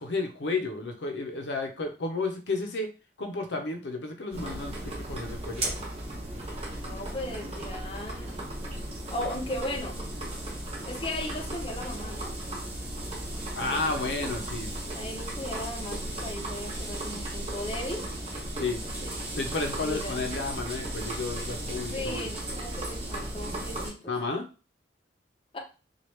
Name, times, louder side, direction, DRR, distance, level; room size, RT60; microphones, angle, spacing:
voice 1, 0.0-2.9 3.2-5.6 13.5-14.7 18.6-18.8 19.3-22.3 24.1-24.5, left 3 dB, 85° left, 5 dB, 0.6 m, -32 dB
sound 1, 4.3-23.9, right 1 dB, 35° right, 0.9 m, -35 dB
voice 2, 6.8-8.5 9.1-10.0 10.9-12.3 14.9-18.1 19.8-20.2 21.9-24.1 25.5-25.6, left 1 dB, 30° left, 1 dB, 0.6 m, -37 dB
3.0 x 2.3 x 3.1 m, 0.34 s
head